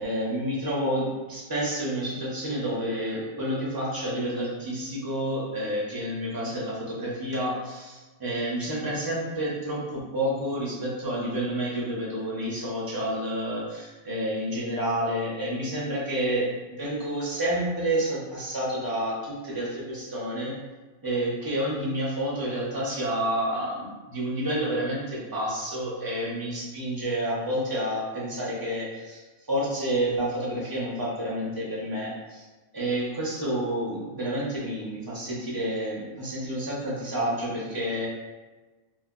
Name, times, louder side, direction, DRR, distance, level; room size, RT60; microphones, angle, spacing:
voice 1, 0.0-20.5 21.0-29.2 29.5-32.4 32.7-38.1, right 1 dB, 20° right, -6 dB, 0.7 m, -29 dB
2.6 x 2.1 x 3.6 m, 1.3 s
omnidirectional pair, 1.3 m